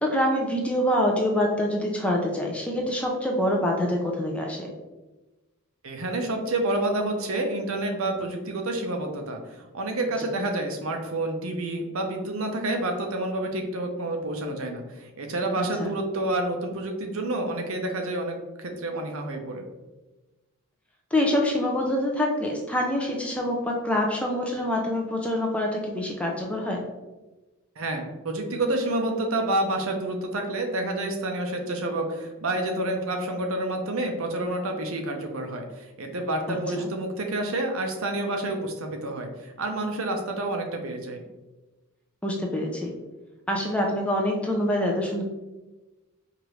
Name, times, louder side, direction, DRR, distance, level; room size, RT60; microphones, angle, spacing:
voice 1, 0.0-4.7 15.6-15.9 21.1-26.8 36.5-36.9 42.2-42.9 43.5-45.2, left 1 dB, 5° left, 0 dB, 0.4 m, -26 dB
voice 2, 5.8-19.7 27.8-41.2, right 2 dB, 70° right, 3 dB, 0.6 m, -29 dB
4.8 x 2.5 x 3.0 m, 1.1 s
head